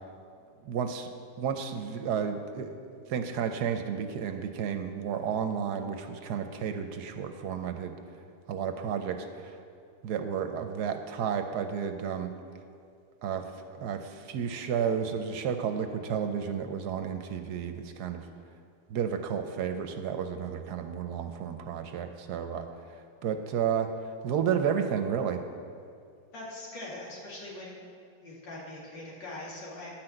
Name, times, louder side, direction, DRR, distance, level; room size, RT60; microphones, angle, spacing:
voice 1, 0.6-1.1 1.4-2.8 3.1-7.9 8.5-9.6 10.0-12.3 13.2-13.4 13.7-18.3 18.9-22.7 23.2-23.9 24.2-25.4, right 7 dB, 70° right, 7 dB, 1.1 m, -32 dB
voice 2, 26.3-27.9 28.2-29.9, left 2 dB, 90° left, -5 dB, 2.9 m, -42 dB
10.5 x 6.0 x 7.7 m, 2.4 s
omnidirectional pair, 2.0 m